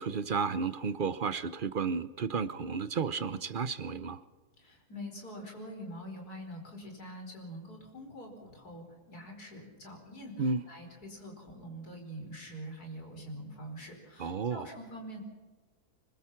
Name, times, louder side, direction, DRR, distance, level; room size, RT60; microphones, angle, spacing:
voice 1, 0.0-4.2 10.4-10.7 14.2-14.7, right 5 dB, 45° right, 0.7 m, -32 dB
voice 2, 4.6-15.2, equal, 70° left, 5.4 m, -45 dB
25.0 x 21.5 x 5.8 m
omnidirectional pair, 1.7 m